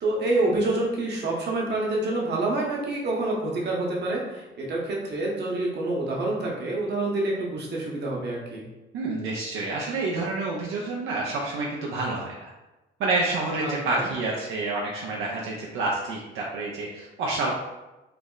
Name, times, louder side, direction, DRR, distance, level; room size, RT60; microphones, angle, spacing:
voice 1, 0.0-8.7 13.6-14.1, right 2 dB, 60° right, -3 dB, 1.0 m, -27 dB
voice 2, 8.9-12.5 13.0-17.5, right 2 dB, 85° right, -4 dB, 0.6 m, -28 dB
3.3 x 2.0 x 3.8 m, 1.1 s
cardioid pair, 90°, 20 cm